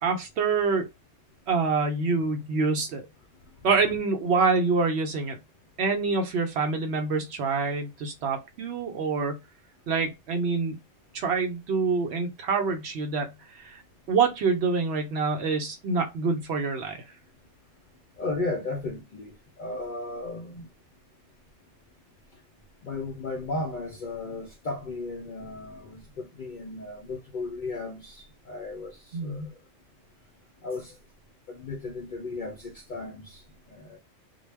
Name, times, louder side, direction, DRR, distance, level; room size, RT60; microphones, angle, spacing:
voice 1, 0.0-0.9 1.5-3.1 3.6-5.4 5.8-9.4 9.9-10.8 11.1-13.8 14.1-17.0 29.1-29.5, right 4 dB, 65° right, 0.8 m, -26 dB
voice 2, 18.2-20.7 22.8-29.5 30.6-31.0 31.5-34.0, left 3 dB, 65° left, 0.4 m, -35 dB
2.2 x 2.0 x 3.2 m
omnidirectional pair, 1.3 m